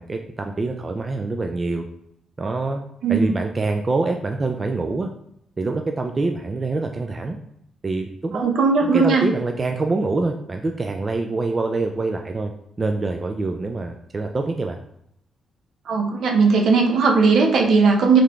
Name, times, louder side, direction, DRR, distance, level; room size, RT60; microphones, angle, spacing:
voice 1, 0.0-1.8 2.4-2.8 3.1-5.1 5.6-7.4 7.8-8.5 8.8-12.5 12.8-14.8, right 3 dB, 30° right, 4 dB, 0.3 m, -25 dB
voice 2, 3.0-3.3 8.3-9.3 15.9-18.2, right 4 dB, 70° right, 2 dB, 0.7 m, -17 dB
3.9 x 3.2 x 3.5 m, 0.73 s
cardioid pair, 115°, 0 cm